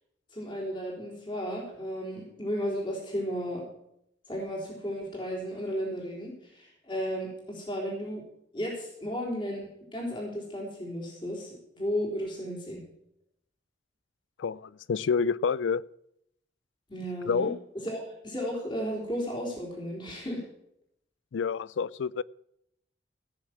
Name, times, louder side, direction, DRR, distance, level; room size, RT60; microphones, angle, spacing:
voice 1, 0.3-3.6 4.3-8.2 8.5-12.8 16.9-17.5 17.8-20.4, equal, 25° left, 3.6 m, -34 dB
voice 2, 14.4-15.8 17.3-17.6 21.3-22.2, left 5 dB, 85° left, 0.4 m, -28 dB
16.5 x 6.5 x 7.4 m
head